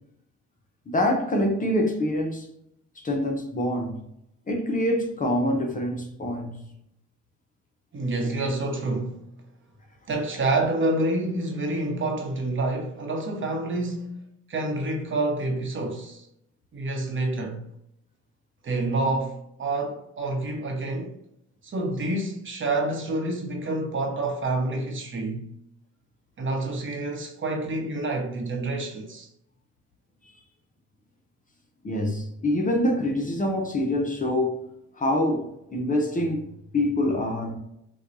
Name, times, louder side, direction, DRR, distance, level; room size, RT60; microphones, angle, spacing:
voice 1, 0.9-2.5 3.0-4.0 4.5-6.7 31.8-34.6 35.0-37.6, left 1 dB, 25° left, 0.6 m, -25 dB
voice 2, 7.9-9.2 10.1-14.2 14.5-16.3 16.7-17.6 18.6-21.1 21.6-25.5 26.4-29.3, right 2 dB, 40° right, 0.9 m, -28 dB
4.3 x 2.3 x 2.6 m
cardioid pair, 90°, 30 cm